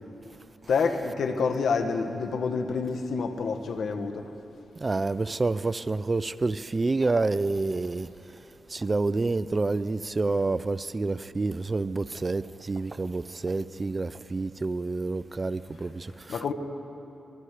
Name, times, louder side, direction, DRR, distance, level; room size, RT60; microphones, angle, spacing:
voice 1, 0.7-4.2 16.3-16.5, left 5 dB, 75° left, 1.6 m, -27 dB
voice 2, 4.8-8.1 8.7-16.5, right 3 dB, 35° right, 0.6 m, -28 dB
27.0 x 20.5 x 5.0 m
cardioid pair, 65°, 0 cm